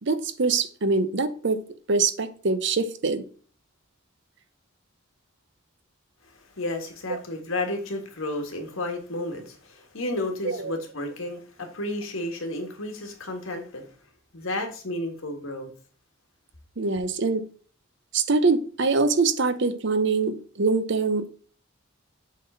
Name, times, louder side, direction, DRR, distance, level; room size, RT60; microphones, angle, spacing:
voice 1, 0.0-1.6 1.9-3.3 7.1-7.2 10.4-10.7 16.8-17.4 18.1-21.3, right 4 dB, 55° right, 0.7 m, -24 dB
voice 2, 6.6-13.9 14.3-15.7, left 1 dB, 75° left, 1.7 m, -32 dB
7.4 x 3.8 x 5.5 m
head